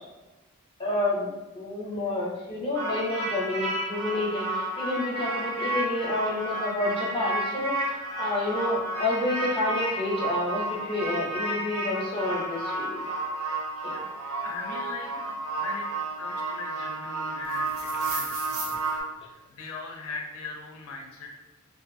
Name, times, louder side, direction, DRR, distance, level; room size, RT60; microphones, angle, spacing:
voice 1, 0.8-7.8 8.2-13.0 13.8-14.0, left 2 dB, 25° left, -3 dB, 0.5 m, -29 dB
sound 1, 2.7-19.0, right 2 dB, 85° right, 0.6 m, -31 dB
voice 2, 14.4-15.9 16.2-18.7 19.2-21.4, left 4 dB, 75° left, 1 dB, 0.4 m, -40 dB
2.5 x 2.4 x 2.5 m, 1.1 s
head